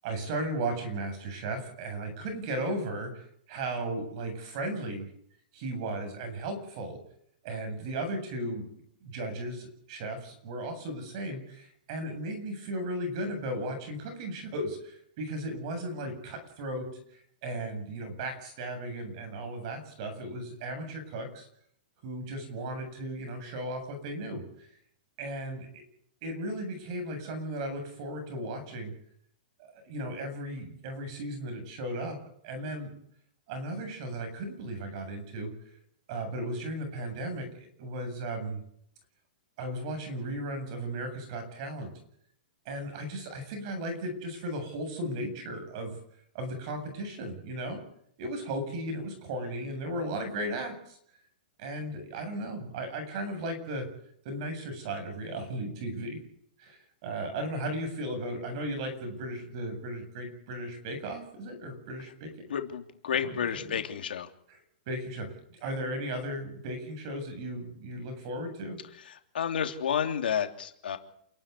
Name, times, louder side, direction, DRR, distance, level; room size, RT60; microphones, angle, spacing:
voice 1, 0.0-3.1 3.5-5.1 5.5-7.0 7.4-8.7 9.0-16.9 17.4-21.5 22.0-24.7 25.2-25.7 26.2-28.9 29.6-32.2 32.4-32.9 33.5-35.5 36.1-38.6 39.6-41.9 42.6-46.0 46.3-47.8 48.2-51.0 51.6-53.9 54.2-56.2 56.6-62.3 63.2-63.8 64.5-64.6 64.9-65.3 65.5-68.8, right 1 dB, 35° right, 7 dB, 8.0 m, -36 dB
voice 2, 62.5-64.3 69.3-71.0, left 8 dB, 90° left, 5 dB, 3.1 m, -30 dB
28.0 x 12.5 x 9.9 m, 0.69 s
hypercardioid pair, 175°, 5 cm